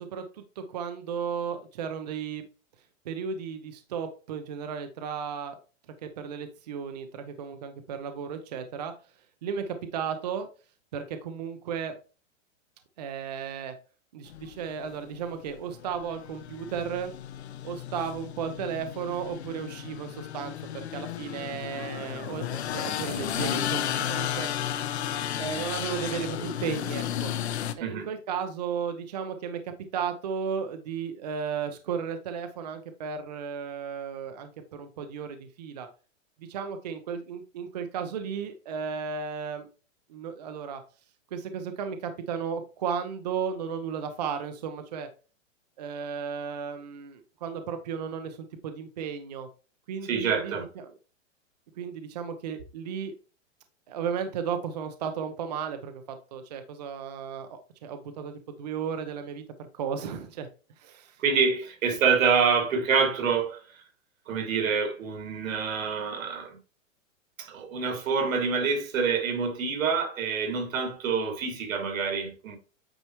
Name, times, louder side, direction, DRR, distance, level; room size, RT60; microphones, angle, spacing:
voice 1, 0.0-2.4 3.0-5.6 6.0-8.9 9.4-10.5 10.9-12.0 13.0-13.7 14.1-17.1 17.6-24.8 25.4-27.3 27.8-35.9 36.4-39.7 40.1-40.8 41.3-45.1 45.8-49.5 49.9-50.8 51.7-53.1 53.9-59.4 59.7-60.5 60.8-61.2, right 7 dB, 30° right, 0.7 m, -34 dB
sound 1, 14.3-27.7, left 10 dB, 55° left, 0.8 m, -34 dB
voice 2, 50.0-50.7 61.2-63.8 64.3-66.6 67.4-72.6, right 5 dB, 90° right, 2.3 m, -26 dB
9.0 x 4.7 x 3.0 m
supercardioid pair, 180°, 39 cm